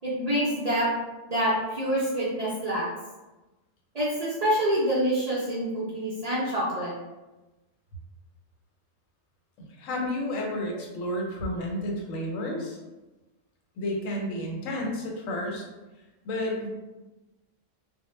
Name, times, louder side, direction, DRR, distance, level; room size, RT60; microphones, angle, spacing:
voice 1, 0.0-0.9 1.3-2.8 3.9-6.9 10.7-10.8, equal, 55° right, -7 dB, 0.4 m, -26 dB
voice 2, 9.6-12.8 13.8-15.6 16.2-16.7, left 1 dB, 85° left, 0 dB, 1.0 m, -31 dB
2.1 x 2.0 x 3.0 m, 1.1 s
omnidirectional pair, 1.3 m